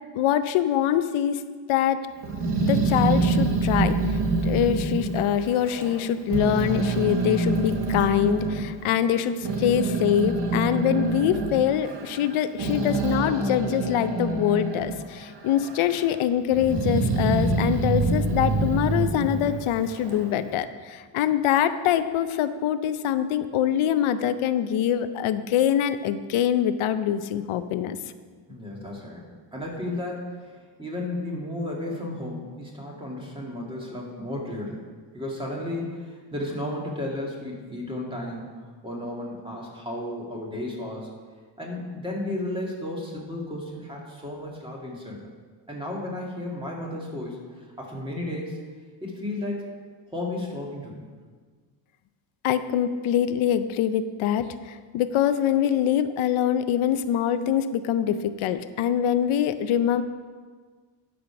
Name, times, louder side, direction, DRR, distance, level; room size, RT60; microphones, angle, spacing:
voice 1, 0.1-2.0 2.6-28.0 52.4-60.0, left 10 dB, 90° left, 11 dB, 0.6 m, -24 dB
Growling, 2.2-6.0 6.3-8.6 9.2-15.0 15.4-16.1 16.5-20.3, right 3 dB, 60° right, 1.5 m, -26 dB
voice 2, 28.5-29.2 29.5-34.8 35.1-38.5 38.8-41.1 41.6-45.2 45.7-48.6 49.0-49.7 50.1-51.0, left 1 dB, 10° right, -3 dB, 2.2 m, -33 dB
12.0 x 5.1 x 5.9 m, 1.5 s
cardioid pair, 130°, 47 cm